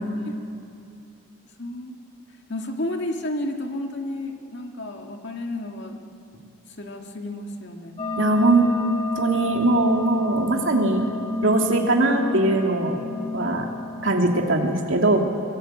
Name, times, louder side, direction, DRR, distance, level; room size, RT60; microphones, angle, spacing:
voice 1, 1.6-2.0 2.5-6.0 6.8-7.9 11.5-11.7, left 1 dB, 50° left, 2 dB, 2.3 m, -32 dB
sound 1, 8.0-14.3, left 3 dB, 25° left, 2.6 m, -31 dB
voice 2, 8.2-8.7 9.1-11.0 11.4-13.0 13.3-13.7 14.0-15.2, right 2 dB, 60° right, 1 dB, 2.7 m, -20 dB
23.5 x 21.0 x 9.0 m, 2.6 s
head